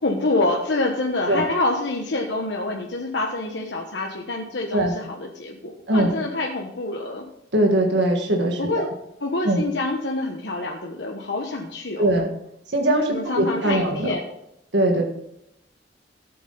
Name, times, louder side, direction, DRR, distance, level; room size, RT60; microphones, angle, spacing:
voice 1, 0.0-7.2 8.6-8.9 9.2-12.1 13.1-14.2, left 2 dB, 85° left, 0 dB, 1.2 m, -26 dB
voice 2, 7.5-8.9 9.4-9.6 12.0-12.2 12.7-14.1 14.7-15.0, right 1 dB, 85° right, 2 dB, 1.7 m, -21 dB
13.5 x 8.5 x 4.0 m, 0.80 s
head